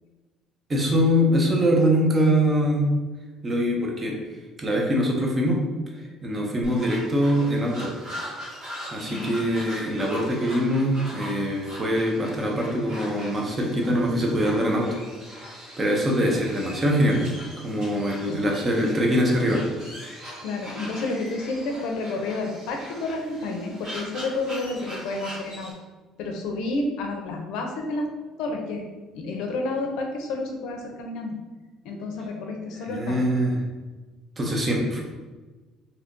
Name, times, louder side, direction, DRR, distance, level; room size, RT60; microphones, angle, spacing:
voice 1, 0.7-2.8 3.4-4.2 4.6-5.6 6.2-7.9 8.9-14.9 15.8-17.2 17.6-19.6 32.9-33.6 34.4-35.0, equal, 20° right, -1 dB, 0.5 m, -23 dB
sound 1, 6.6-25.7, equal, 35° right, 1.4 m, -40 dB
voice 2, 9.1-9.8 18.3-18.4 20.4-25.7 26.2-28.1 28.4-28.8 29.1-31.4 31.8-33.2, left 2 dB, 75° left, 2 dB, 0.5 m, -30 dB
2.7 x 2.5 x 3.6 m, 1.3 s
cardioid pair, 160°, 0 cm